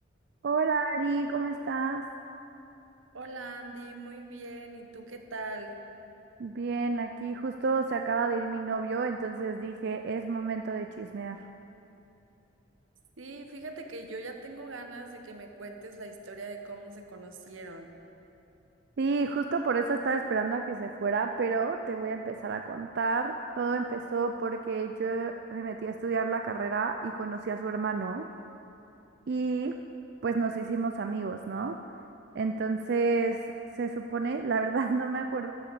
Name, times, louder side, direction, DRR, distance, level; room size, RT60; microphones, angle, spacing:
voice 1, 0.4-2.0 6.4-11.4 19.0-28.3 29.3-29.8 30.2-31.8 32.3-33.4 33.7-35.5, right 4 dB, 55° right, 6 dB, 0.4 m, -30 dB
voice 2, 3.1-5.8 13.2-17.9, right 2 dB, 85° right, 5 dB, 1.1 m, -42 dB
13.5 x 6.8 x 6.8 m, 2.9 s
head